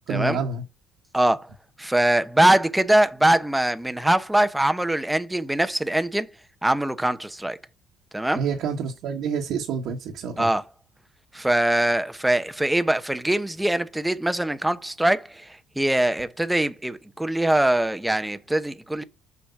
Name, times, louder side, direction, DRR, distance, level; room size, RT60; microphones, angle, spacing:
voice 1, 0.1-0.6 8.3-10.5, right 5 dB, 65° right, 1.4 m, -28 dB
voice 2, 1.1-1.5 1.8-6.3 6.6-7.6 8.1-8.4 10.4-10.6 11.3-15.5 15.8-19.0, right 1 dB, 5° right, 0.9 m, -22 dB
7.0 x 5.1 x 5.8 m
hypercardioid pair, 65°, 0 cm